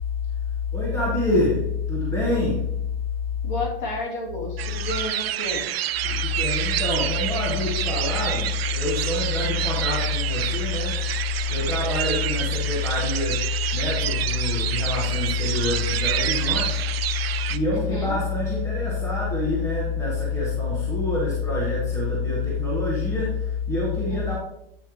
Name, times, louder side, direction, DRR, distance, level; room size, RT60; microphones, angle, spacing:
voice 1, 0.7-2.8 6.0-11.1 11.5-16.8 17.5-24.4, left 3 dB, 10° left, -5 dB, 1.6 m, -25 dB
voice 2, 3.4-5.6 17.7-18.1 24.0-24.4, left 2 dB, 50° left, -3 dB, 3.0 m, -31 dB
sound 1, 4.6-17.6, right 12 dB, 85° right, 0.5 m, -28 dB
8.9 x 5.5 x 3.2 m, 0.76 s
supercardioid pair, 160°, 29 cm